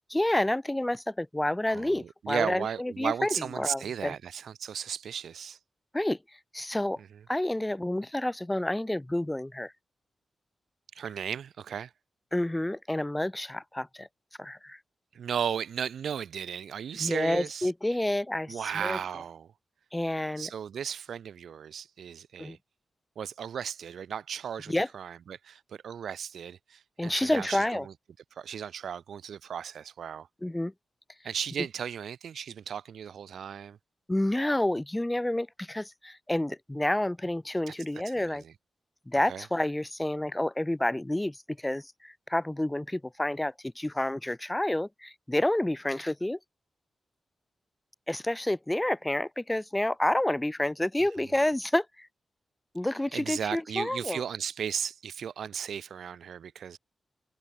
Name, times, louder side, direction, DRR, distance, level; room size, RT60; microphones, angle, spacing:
voice 1, 0.1-4.1 5.9-6.2 6.5-7.0 7.3-9.7 12.3-14.1 14.4-14.8 17.0-19.0 19.9-20.5 22.4-22.6 24.7-24.9 27.0-27.9 30.4-30.7 34.1-38.4 39.1-46.4 48.1-52.1 52.7-54.2, left 1 dB, 10° left, 0.5 m, -29 dB
voice 2, 1.7-5.6 10.9-11.9 15.1-17.7 18.5-19.5 20.4-22.6 23.2-27.9 28.4-30.3 31.2-33.8 37.7-37.8 38.1-38.5 39.3-39.4 51.2-51.3 53.1-56.8, right 8 dB, 85° right, 0.7 m, -35 dB
cardioid pair, 80°, 0 cm